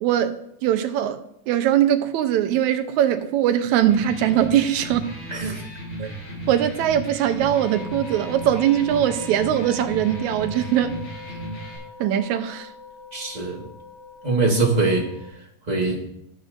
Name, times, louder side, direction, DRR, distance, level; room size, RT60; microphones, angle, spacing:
voice 1, 0.0-0.4 0.6-1.2 1.5-5.1 6.0-6.1 6.5-10.9 12.0-12.7, right 11 dB, 80° right, 8 dB, 2.1 m, -21 dB
Electric guitar, 3.8-11.8, right 1 dB, 60° left, 6.4 m, -35 dB
voice 2, 5.3-5.6 13.1-13.6 14.2-15.1 15.7-16.0, right 3 dB, 20° right, -1 dB, 1.1 m, -22 dB
sound 1, 7.4-15.3, left 5 dB, 85° left, 5.8 m, -42 dB
12.5 x 11.5 x 2.6 m, 0.74 s
omnidirectional pair, 3.4 m